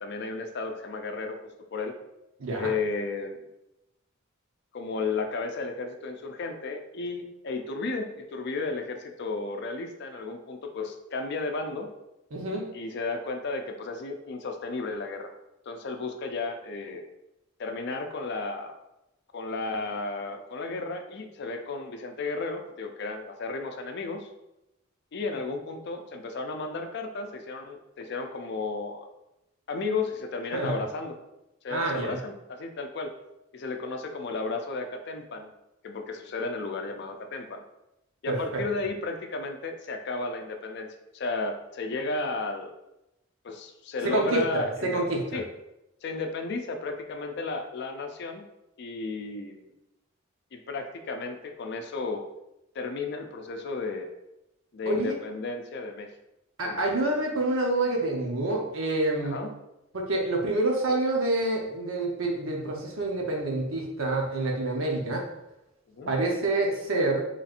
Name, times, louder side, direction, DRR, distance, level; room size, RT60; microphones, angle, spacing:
voice 1, 0.0-1.4 1.7-1.9 2.6-3.4 4.7-11.9 12.7-15.3 15.7-17.0 17.6-18.8 19.3-24.3 25.1-29.1 29.7-31.2 31.6-33.1 33.5-35.5 35.8-37.6 38.2-42.7 43.4-45.0 45.3-45.4 46.0-48.4 48.8-49.7 50.5-52.2 52.7-54.1 54.7-56.1 56.6-56.8 59.2-59.5 65.9-66.1, left 3 dB, 55° left, 5 dB, 0.4 m, -33 dB
voice 2, 2.4-2.7 12.3-12.7 30.5-30.8 31.7-32.2 38.3-38.6 44.0-45.4 54.9-55.2 56.6-59.4 59.9-65.2 66.1-67.2, right 2 dB, 80° right, 0 dB, 0.8 m, -27 dB
4.2 x 3.1 x 2.5 m, 0.90 s
head